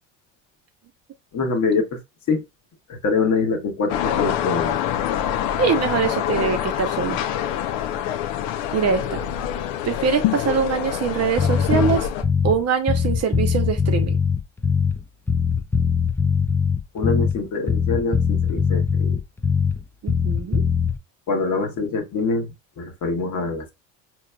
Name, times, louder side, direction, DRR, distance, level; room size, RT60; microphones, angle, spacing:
voice 1, 1.3-2.0 2.3-2.4 2.9-4.7 16.9-19.2 21.3-23.7, left 4 dB, 50° left, 1.3 m, -24 dB
sound 1, 3.9-12.2, left 11 dB, 70° left, 0.7 m, -25 dB
voice 2, 5.6-7.2 8.7-9.2 9.8-12.1 12.4-14.2 20.0-20.6, right 6 dB, 45° right, 0.8 m, -23 dB
Bass guitar, 11.4-12.6 12.9-15.0 15.3-17.4 17.7-19.8 20.1-21.0, left 5 dB, 5° left, 0.3 m, -21 dB
4.5 x 3.0 x 2.2 m
supercardioid pair, 95°, 37 cm